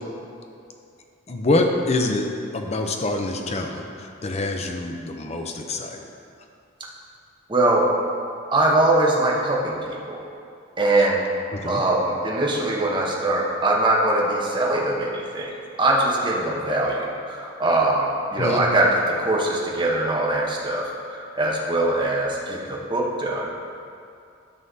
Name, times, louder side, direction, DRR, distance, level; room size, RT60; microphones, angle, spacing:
voice 1, 1.3-2.3 2.5-6.0 11.5-11.8 18.4-18.6, left 2 dB, 30° left, 3 dB, 0.6 m, -25 dB
voice 2, 7.5-7.9 8.5-10.2 10.8-11.2 11.6-23.6, right 2 dB, 25° right, -3 dB, 1.0 m, -22 dB
12.5 x 5.7 x 2.8 m, 2.5 s
head